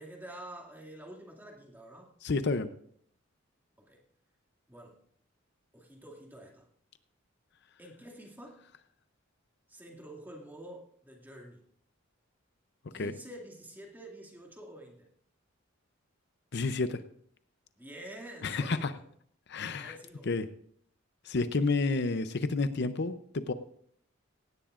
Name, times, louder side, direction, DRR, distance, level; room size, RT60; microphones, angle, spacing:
voice 1, 0.0-2.1 3.9-4.0 4.7-5.0 5.7-6.7 7.8-8.6 9.7-11.6 12.9-15.1 17.8-18.9 19.8-20.3, right 1 dB, 10° right, 0 dB, 2.3 m, -48 dB
voice 2, 2.2-2.7 12.9-13.1 16.5-17.0 18.4-18.9 19.5-20.0 20.3-20.5 21.2-23.5, left 3 dB, 55° left, 11 dB, 0.6 m, -30 dB
17.5 x 16.0 x 2.5 m, 0.64 s
head